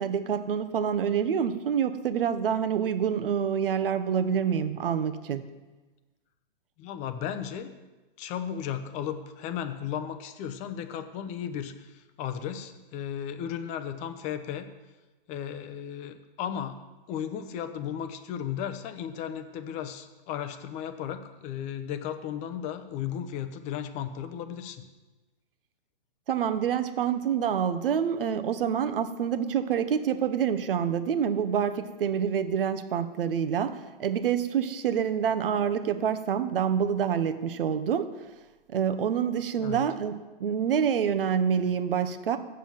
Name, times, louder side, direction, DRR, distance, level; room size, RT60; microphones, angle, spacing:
voice 1, 0.0-5.4 26.3-38.1 38.7-40.1 40.4-42.4, right 8 dB, 70° right, 10 dB, 0.9 m, -27 dB
voice 2, 6.8-7.7 8.2-14.7 15.3-16.8 17.1-24.8 39.6-39.9, left 9 dB, 25° left, 9 dB, 0.7 m, -35 dB
7.7 x 7.2 x 7.2 m, 1.2 s
hypercardioid pair, 135°, 29 cm